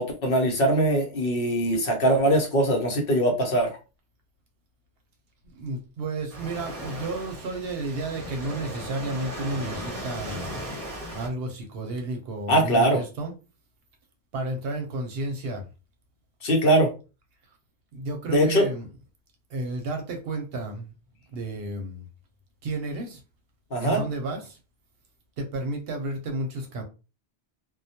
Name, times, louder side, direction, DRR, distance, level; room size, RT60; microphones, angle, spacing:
voice 1, 0.0-3.7 12.5-13.0 16.4-16.9 18.3-18.7 23.7-24.0, right 1 dB, 60° left, 0.9 m, -21 dB
voice 2, 5.5-10.6 11.1-13.3 14.3-15.7 17.9-18.9 19.5-20.9 21.3-22.1 22.6-23.2 23.8-24.6 25.4-26.8, right 2 dB, 65° right, 0.8 m, -32 dB
Waves surf, 6.3-11.3, equal, 35° right, 0.7 m, -37 dB
2.2 x 2.1 x 2.7 m
omnidirectional pair, 1.1 m